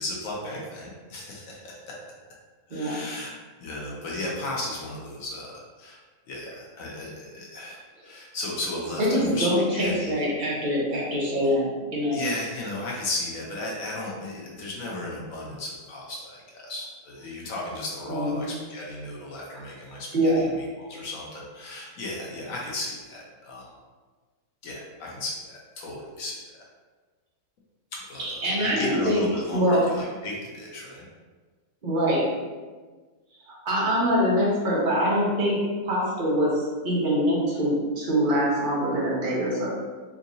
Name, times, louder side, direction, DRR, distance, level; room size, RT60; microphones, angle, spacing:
voice 1, 0.0-1.9 2.7-3.3 3.6-6.0 6.3-10.1 11.4-11.5 12.1-23.7 24.6-26.3 28.1-31.1, left 2 dB, 65° left, -3 dB, 1.0 m, -35 dB
voice 2, 2.7-3.0 9.0-12.2 18.1-18.5 20.1-20.4 28.2-29.8 31.8-32.2 33.6-35.6 35.8-39.7, equal, 35° right, -6 dB, 0.9 m, -24 dB
3.6 x 2.9 x 2.6 m, 1.4 s
omnidirectional pair, 1.7 m